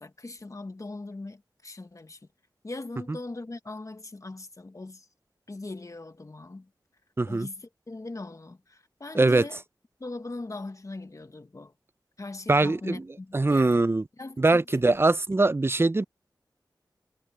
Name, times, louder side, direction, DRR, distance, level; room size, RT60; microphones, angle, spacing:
voice 1, 0.0-2.2 2.6-5.1 5.5-6.7 7.2-9.6 10.0-11.7 12.2-13.8 14.2-14.8, left 2 dB, 45° left, 1.5 m, -40 dB
voice 2, 7.2-7.5 9.1-9.4 12.5-13.0 13.3-14.0 14.4-16.0, right 2 dB, 30° right, 0.6 m, -22 dB
cardioid pair, 50°, 8 cm